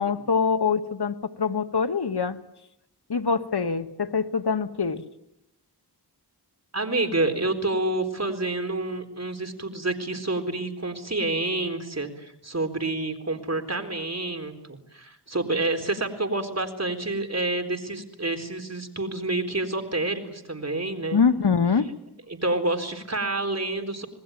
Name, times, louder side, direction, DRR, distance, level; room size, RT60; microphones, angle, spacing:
voice 1, 0.0-2.4 3.1-5.0 21.1-21.9, left 5 dB, 70° left, 8 dB, 1.6 m, -24 dB
voice 2, 6.7-21.2 22.3-24.1, right 2 dB, 40° right, 5 dB, 4.1 m, -28 dB
26.5 x 20.5 x 9.2 m, 0.81 s
wide cardioid pair, 55°, 40 cm